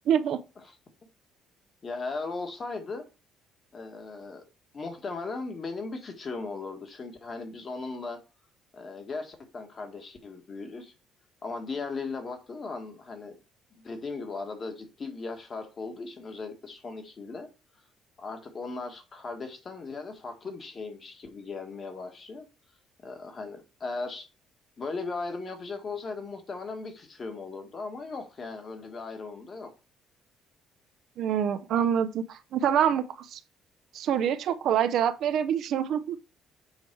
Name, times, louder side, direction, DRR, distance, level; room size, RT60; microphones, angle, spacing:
voice 1, 0.1-0.4 31.2-33.4 33.9-36.2, right 9 dB, 60° right, 0.6 m, -26 dB
voice 2, 1.8-3.0 3.7-4.4 4.7-8.2 8.7-10.9 11.4-13.4 13.7-17.5 18.2-22.4 23.0-24.3 24.8-29.7, left 3 dB, 30° left, 1.5 m, -37 dB
7.3 x 4.8 x 4.5 m
cardioid pair, 150°, 0 cm